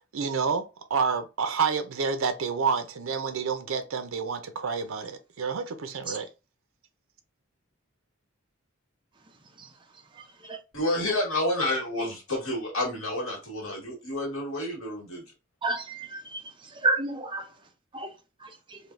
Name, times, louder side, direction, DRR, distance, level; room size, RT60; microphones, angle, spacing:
voice 1, 0.1-6.3, right 5 dB, 75° right, 0.5 m, -29 dB
voice 2, 10.7-15.2, left 1 dB, 85° left, 1.6 m, -29 dB
voice 3, 15.6-16.4 16.8-17.4 17.9-18.1 18.4-18.8, right 3 dB, 25° right, 0.5 m, -30 dB
3.4 x 2.6 x 2.5 m
head